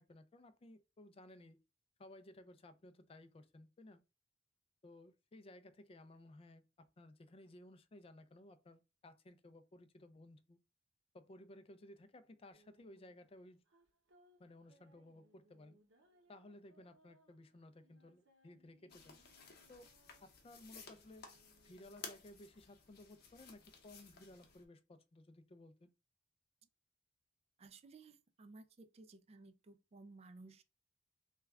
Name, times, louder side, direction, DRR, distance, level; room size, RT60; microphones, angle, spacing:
voice 1, 0.0-1.6 2.0-4.0 4.8-10.6 11.1-13.6 14.4-15.8 16.3-19.2 19.7-19.9 20.2-21.3 21.6-25.9, left 1 dB, 30° left, 0.4 m, -58 dB
sound 1, 12.5-22.3, right 1 dB, 90° right, 0.8 m, -72 dB
sound 2, 18.9-24.6, left 5 dB, 55° left, 0.8 m, -56 dB
voice 2, 27.6-30.6, right 3 dB, 35° right, 0.4 m, -57 dB
3.2 x 2.3 x 3.4 m
head